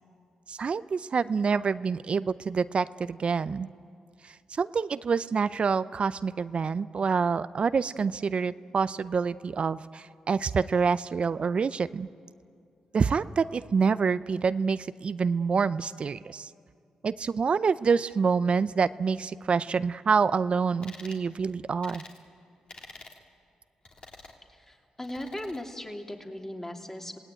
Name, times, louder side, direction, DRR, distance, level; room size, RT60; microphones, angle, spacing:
voice 1, 0.5-3.7 4.2-12.1 12.9-16.5 17.0-22.0, right 5 dB, 50° right, 15 dB, 0.5 m, -27 dB
sound 1, 20.8-21.2 21.8-22.2 22.7-23.2 23.8-24.4 25.0-25.6, left 2 dB, 45° left, 3.0 m, -47 dB
voice 2, 24.5-27.2, left 1 dB, 15° left, 3 dB, 2.8 m, -38 dB
27.5 x 18.0 x 9.0 m, 2.4 s
supercardioid pair, 55°, 2 cm